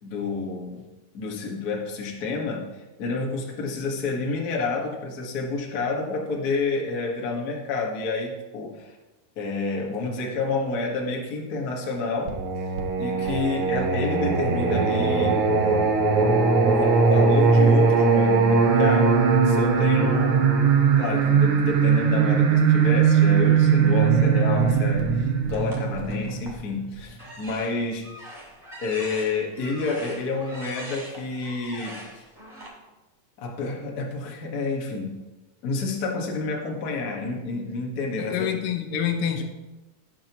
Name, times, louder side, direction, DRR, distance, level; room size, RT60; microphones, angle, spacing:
voice 1, 0.0-0.8 1.1-2.7 3.0-9.0 9.3-12.4 13.0-19.1 19.4-20.4 21.0-28.1 28.8-32.2 33.4-35.2 35.6-38.5, left 3 dB, 40° left, -2 dB, 1.4 m, -29 dB
Singing, 12.3-27.0, right 5 dB, 85° right, 1.2 m, -20 dB
sound 1, 25.5-26.6 27.1-32.7, right 1 dB, 15° right, 2.2 m, -42 dB
voice 2, 38.2-39.4, left 8 dB, 85° left, 5 dB, 2.7 m, -26 dB
18.0 x 7.5 x 3.0 m, 1.1 s
omnidirectional pair, 3.9 m